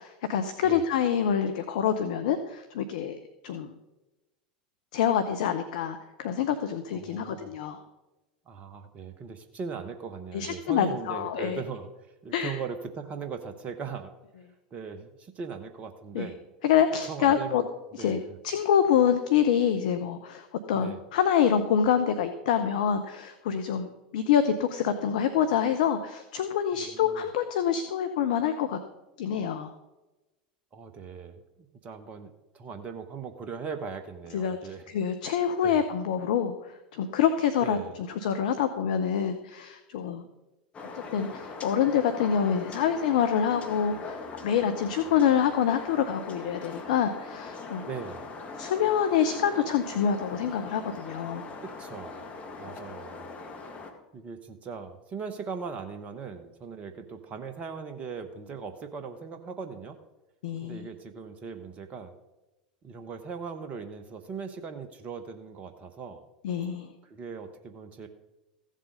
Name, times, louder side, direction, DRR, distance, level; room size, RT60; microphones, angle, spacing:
voice 1, 0.0-3.2 3.4-3.7 4.9-7.8 10.3-11.6 12.3-12.6 16.1-16.3 16.6-17.6 17.9-18.2 18.4-28.8 29.2-29.7 34.3-34.6 34.9-40.3 41.1-47.9 48.6-51.5 60.4-60.9 66.4-66.9, left 8 dB, 60° left, 8 dB, 0.8 m, -26 dB
voice 2, 6.9-7.5 8.5-11.9 12.2-14.1 14.7-16.4 17.1-17.7 17.9-18.4 20.7-21.0 26.8-27.2 30.7-31.4 31.8-34.8 35.6-35.8 37.6-37.9 47.9-48.3 51.6-52.2 52.5-53.3 54.1-60.0 60.6-62.1 62.8-66.2 67.0-68.1, right 5 dB, 30° right, 8 dB, 1.1 m, -39 dB
sound 1, 40.7-53.9, left 3 dB, 25° left, 1.9 m, -41 dB
15.0 x 7.5 x 5.2 m, 1.0 s
figure-of-eight pair, 85°, 5 cm